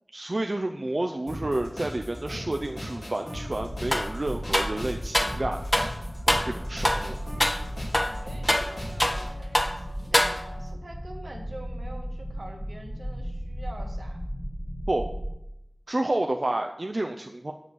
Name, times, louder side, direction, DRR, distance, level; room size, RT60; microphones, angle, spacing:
voice 1, 0.1-5.9 6.4-7.2 14.9-15.1 15.9-17.5, right 2 dB, 55° right, 4 dB, 0.5 m, -30 dB
sound 1, 1.3-9.3, equal, 80° left, 2.7 m, -38 dB
sound 2, 3.3-15.3, equal, 35° left, 2.2 m, -36 dB
sound 3, 3.9-4.1 4.5-5.4 5.7-5.9 6.3-6.5 6.8-7.1 7.4-7.6 7.9-9.3 9.5-9.8 10.1-10.7, equal, 20° left, 0.7 m, -25 dB
voice 2, 8.0-14.2, right 1 dB, 85° right, 2 dB, 1.5 m, -45 dB
7.4 x 7.0 x 6.3 m, 0.84 s
wide cardioid pair, 45°, 0 cm